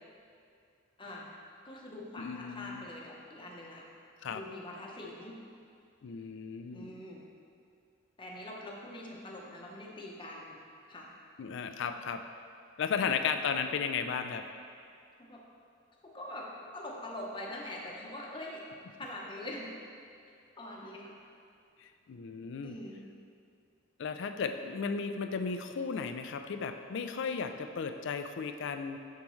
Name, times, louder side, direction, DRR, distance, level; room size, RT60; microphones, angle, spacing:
voice 1, 1.6-3.8 4.3-5.4 6.7-7.2 8.2-10.6 10.9-11.1 13.0-13.2 15.2-15.4 16.0-16.5 16.7-18.6 19.0-19.7 20.6-21.1 22.6-23.1, left 1 dB, 25° left, -3 dB, 0.8 m, -43 dB
voice 2, 2.2-2.8 4.2-4.4 6.0-7.0 11.4-12.2 12.8-14.4 21.8-22.8 24.0-29.0, left 6 dB, 65° left, 8 dB, 0.4 m, -35 dB
7.0 x 6.5 x 3.1 m, 2.4 s
head